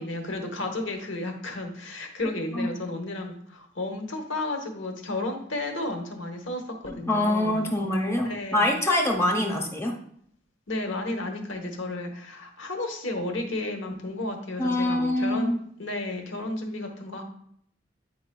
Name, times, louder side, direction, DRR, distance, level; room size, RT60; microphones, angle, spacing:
voice 1, 0.0-7.9 8.2-8.7 10.7-15.5 15.8-17.2, left 2 dB, 85° left, 4 dB, 1.1 m, -33 dB
voice 2, 7.1-9.9 14.6-15.6, left 1 dB, 15° left, 2 dB, 0.9 m, -24 dB
9.2 x 4.8 x 2.2 m, 0.66 s
head